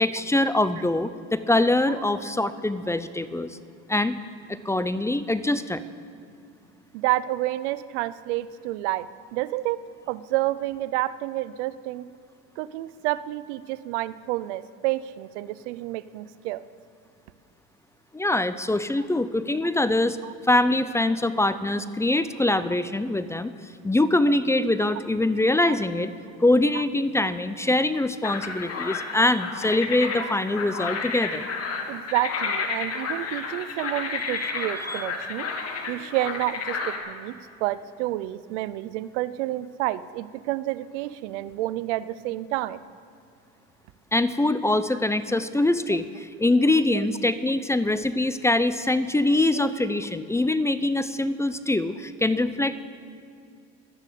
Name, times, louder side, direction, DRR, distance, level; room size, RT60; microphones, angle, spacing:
voice 1, 0.0-3.6 3.9-4.2 4.5-5.8 18.1-20.2 20.4-26.1 26.4-31.5 34.4-35.1 44.1-52.8, left 2 dB, 10° left, 13 dB, 0.5 m, -24 dB
voice 2, 6.9-12.1 12.6-16.6 20.2-20.3 25.7-25.8 26.7-26.8 30.2-30.3 31.9-35.5 35.9-42.9, right 16 dB, 90° right, 16 dB, 0.6 m, -29 dB
sound 1, 28.2-37.0, left 5 dB, 45° left, 2.0 m, -31 dB
12.5 x 10.5 x 8.4 m, 2.4 s
supercardioid pair, 105°, 34 cm